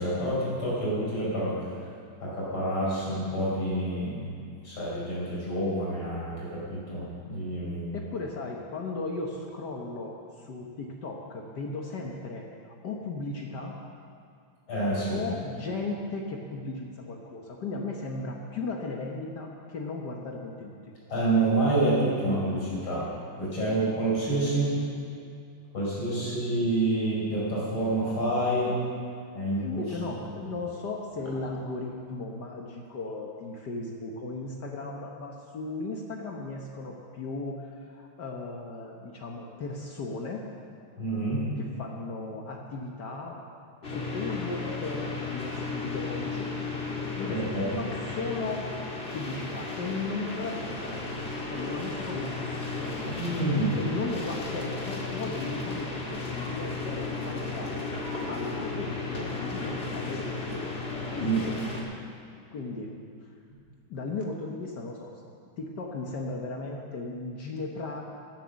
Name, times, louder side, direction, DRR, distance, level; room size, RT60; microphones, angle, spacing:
voice 1, 0.0-1.6 2.2-4.3 4.6-7.9 14.7-15.2 21.1-23.1 23.4-24.8 25.7-28.8 29.3-29.7 41.0-41.5 47.3-47.8 53.0-53.8 61.2-61.4, right 1 dB, 85° left, -7 dB, 5.7 m, -28 dB
voice 2, 7.9-12.4 12.8-13.8 15.1-20.7 29.6-40.4 41.6-43.4 43.8-46.5 47.2-48.6 49.1-51.0 51.5-53.2 53.8-57.8 58.3-60.6 61.1-61.9 62.5-62.9 63.9-65.1 65.6-68.0, left 3 dB, 60° left, 0 dB, 1.6 m, -36 dB
sound 1, 43.8-61.8, left 3 dB, 30° left, 2.0 m, -34 dB
14.0 x 11.0 x 6.4 m, 2.3 s
omnidirectional pair, 2.2 m